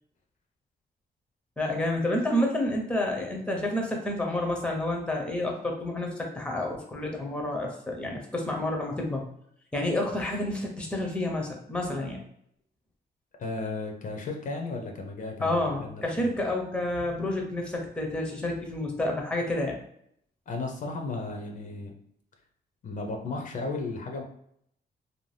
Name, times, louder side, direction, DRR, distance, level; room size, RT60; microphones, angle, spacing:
voice 1, 1.6-9.3 9.7-12.2 15.4-19.8, left 1 dB, 5° left, 1 dB, 0.6 m, -29 dB
voice 2, 13.4-16.3 20.5-21.9 22.8-24.2, left 3 dB, 50° left, 2 dB, 0.5 m, -34 dB
2.6 x 2.2 x 3.2 m, 0.71 s
wide cardioid pair, 140°, 17 cm